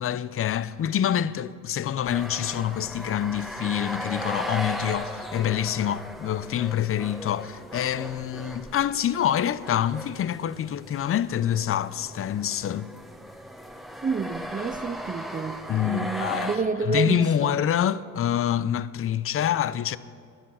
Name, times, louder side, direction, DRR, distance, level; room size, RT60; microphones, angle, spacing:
voice 1, 0.0-12.9 15.7-16.5 16.8-20.0, left 10 dB, 40° left, 0.5 m, -26 dB
sound 1, 2.1-16.6, equal, ahead, 1.2 m, -37 dB
voice 2, 14.0-17.6, right 4 dB, 20° right, 0.5 m, -29 dB
22.0 x 7.6 x 5.6 m
cardioid pair, 80°, 36 cm